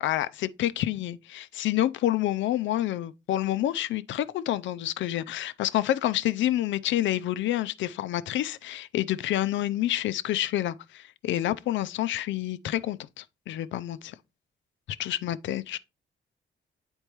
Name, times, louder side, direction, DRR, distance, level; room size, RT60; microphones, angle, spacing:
voice 1, 0.0-14.1 15.0-15.8, left 13 dB, 70° left, 0.5 m, -28 dB
8.1 x 4.4 x 3.0 m
cardioid pair, 90°, 20 cm